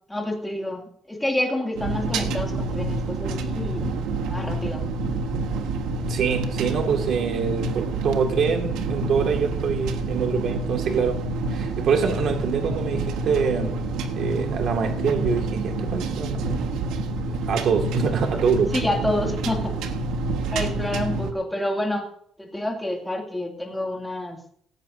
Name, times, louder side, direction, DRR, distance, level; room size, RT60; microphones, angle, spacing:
voice 1, 0.1-3.8 4.3-4.9 18.7-19.8 20.5-22.1 22.4-24.4, left 1 dB, 5° left, 0 dB, 2.5 m, -28 dB
sound 1, 1.7-21.3, right 2 dB, 80° right, 1.4 m, -28 dB
voice 2, 6.1-11.2 11.5-13.8 14.2-16.8 17.1-18.7, right 6 dB, 50° right, 3 dB, 2.0 m, -25 dB
17.5 x 16.0 x 2.7 m, 0.67 s
cardioid pair, 175°, 0 cm